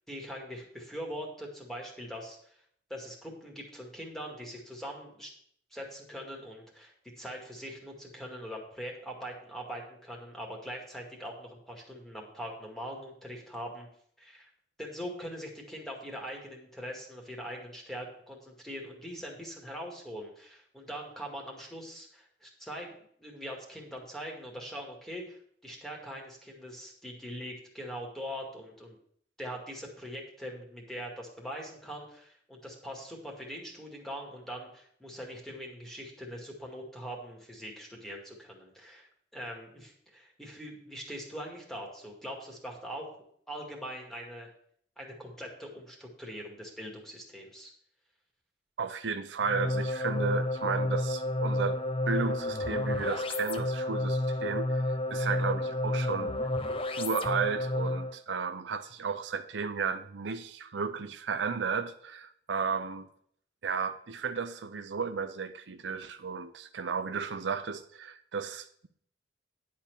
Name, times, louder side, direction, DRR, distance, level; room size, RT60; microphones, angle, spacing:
voice 1, 0.1-2.4 2.9-5.3 5.7-13.9 14.2-14.5 14.8-22.9 23.2-25.4 25.6-29.0 29.4-43.1 43.5-44.5 45.0-47.7, equal, 5° left, 2.0 m, -42 dB
voice 2, 48.8-51.8 52.1-56.3 57.0-63.1 63.6-68.9, right 5 dB, 75° right, 0.6 m, -34 dB
sound 1, 49.4-58.2, left 1 dB, 30° left, 0.6 m, -31 dB
10.0 x 4.4 x 6.7 m
head